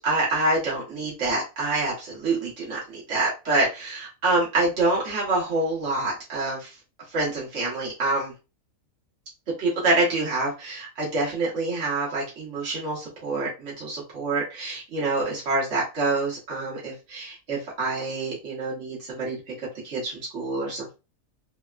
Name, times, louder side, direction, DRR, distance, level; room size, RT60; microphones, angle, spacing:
voice 1, 0.0-6.7 7.1-8.3 9.6-19.4 19.8-20.9, right 2 dB, 65° right, -6 dB, 1.5 m, -26 dB
3.4 x 2.2 x 2.3 m, 0.28 s
omnidirectional pair, 1.4 m